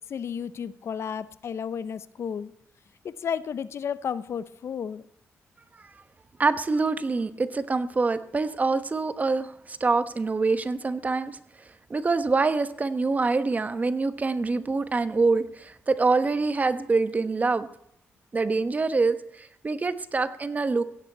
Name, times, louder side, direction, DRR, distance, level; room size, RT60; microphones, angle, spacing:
voice 1, 0.1-2.5 3.0-5.0, left 7 dB, 65° left, 16 dB, 0.7 m, -32 dB
voice 2, 6.4-11.3 11.9-17.7 18.3-19.2 19.6-20.8, right 3 dB, 30° right, 12 dB, 1.1 m, -25 dB
16.5 x 6.8 x 8.5 m, 0.71 s
cardioid pair, 90°, 5 cm